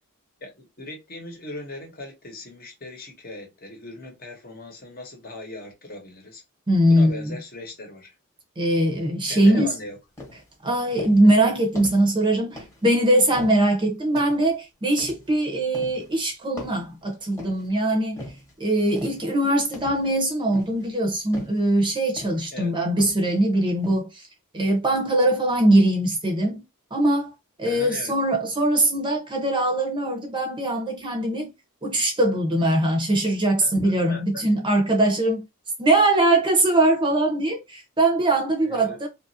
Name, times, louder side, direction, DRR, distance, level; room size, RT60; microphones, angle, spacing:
voice 1, 0.4-6.4 6.9-8.1 9.2-10.0 22.5-22.7 27.6-28.1 33.6-34.4 38.6-39.0, left 2 dB, 45° left, 1.0 m, -39 dB
voice 2, 6.7-7.3 8.6-9.7 10.6-18.2 18.6-24.2 24.5-26.6 26.9-27.3 27.6-31.5 31.8-35.4 35.8-39.1, right 1 dB, 20° right, 0.7 m, -21 dB
sound 1, 9.4-9.7 10.2-10.5 11.0-11.3 11.8-12.1 12.6-12.9 13.3-13.7 14.2-14.5 15.0-15.3 15.7-16.1 16.6-17.7 18.2-18.5 19.0-19.3 19.7-20.1 20.5-20.9 21.3-21.7 22.2-22.5 23.0-23.4 23.8-24.0, left 1 dB, 15° left, 1.0 m, -40 dB
2.9 x 2.4 x 2.7 m
head